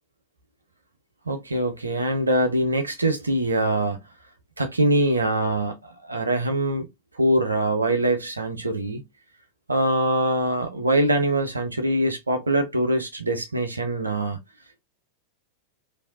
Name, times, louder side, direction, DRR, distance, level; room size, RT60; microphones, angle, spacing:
voice 1, 1.3-4.0 4.6-6.9 7.2-9.0 9.7-14.4, right 1 dB, 80° right, 0.7 m, -23 dB
3.3 x 2.6 x 2.7 m
figure-of-eight pair, 90°, 0 cm